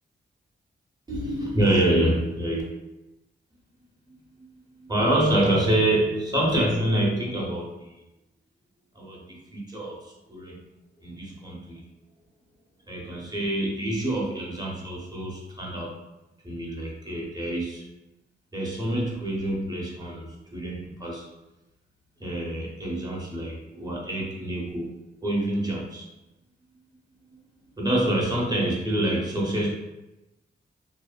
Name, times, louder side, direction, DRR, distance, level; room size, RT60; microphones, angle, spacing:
voice 1, 1.1-2.6 4.8-7.9 8.9-10.7 11.0-11.8 12.9-16.0 16.4-17.8 18.5-21.3 22.2-24.9 25.2-26.1 27.8-29.7, right 1 dB, 20° right, -3 dB, 0.8 m, -26 dB
2.7 x 2.1 x 2.3 m, 0.98 s
cardioid pair, 70°, 19 cm